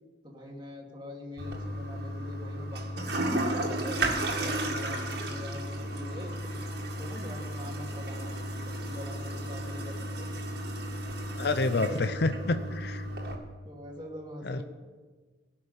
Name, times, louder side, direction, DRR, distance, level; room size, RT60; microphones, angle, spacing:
voice 1, 0.2-4.0 4.4-10.3 11.0-11.1 11.6-12.5 13.6-14.6, left 1 dB, 25° right, 0 dB, 2.3 m, -44 dB
Toilet flush, 1.4-13.3, right 1 dB, 60° right, 2.1 m, -34 dB
voice 2, 11.3-13.1 14.4-14.6, left 3 dB, 60° left, 10 dB, 0.6 m, -28 dB
18.0 x 6.1 x 9.5 m, 1.4 s
head